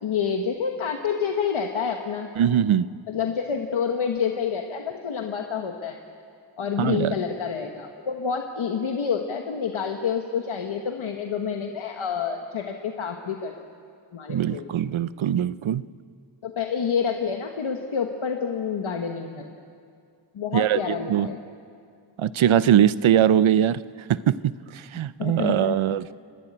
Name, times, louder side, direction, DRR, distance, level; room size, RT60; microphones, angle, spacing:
voice 1, 0.0-2.3 3.1-6.0 6.6-13.5 14.1-14.7 16.4-19.5 20.3-21.4 25.2-26.0, left 6 dB, 90° left, 3 dB, 1.3 m, -28 dB
voice 2, 2.4-2.9 6.8-7.1 14.3-15.9 20.5-21.3 22.2-23.8 24.1-26.1, right 10 dB, 85° right, 17 dB, 0.7 m, -21 dB
30.0 x 11.5 x 9.9 m, 2.3 s
wide cardioid pair, 105°, 47 cm